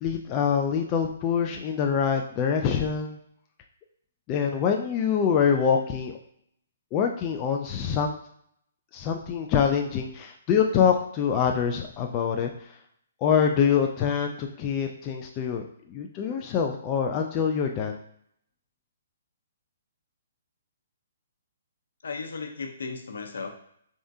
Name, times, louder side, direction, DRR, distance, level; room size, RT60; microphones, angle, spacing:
voice 1, 0.0-3.2 4.3-6.2 6.9-8.1 8.9-12.5 13.2-15.6 15.9-18.0, left 7 dB, 25° left, 3 dB, 0.4 m, -25 dB
voice 2, 22.0-23.5, left 4 dB, 85° left, 4 dB, 0.8 m, -35 dB
4.5 x 3.6 x 2.7 m, 0.68 s
hypercardioid pair, 160°, 0 cm